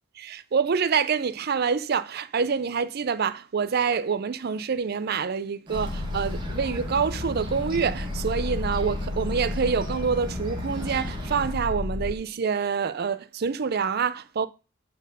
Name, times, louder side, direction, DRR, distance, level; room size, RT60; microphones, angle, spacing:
voice 1, 0.2-14.5, right 6 dB, 50° right, 0.5 m, -26 dB
sound 1, 5.7-12.1, left 2 dB, 40° left, 0.6 m, -32 dB
Bird, 5.7-11.6, equal, 25° right, 1.7 m, -38 dB
8.3 x 4.5 x 5.3 m
head